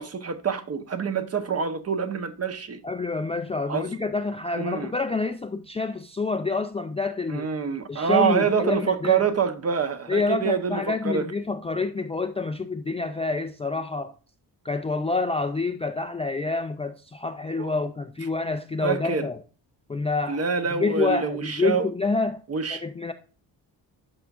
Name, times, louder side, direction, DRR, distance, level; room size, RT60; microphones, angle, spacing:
voice 1, 0.0-2.8 3.7-3.9 4.5-4.9 7.3-11.2 17.6-17.8 18.8-19.3 20.3-21.9 22.5-22.8, right 6 dB, 35° right, 1.0 m, -26 dB
voice 2, 2.8-7.5 7.9-9.2 10.1-14.2 14.6-19.4 19.9-20.5 20.7-22.4 22.7-23.1, left 3 dB, 15° left, 0.4 m, -27 dB
12.0 x 4.7 x 2.5 m
cardioid pair, 115°, 41 cm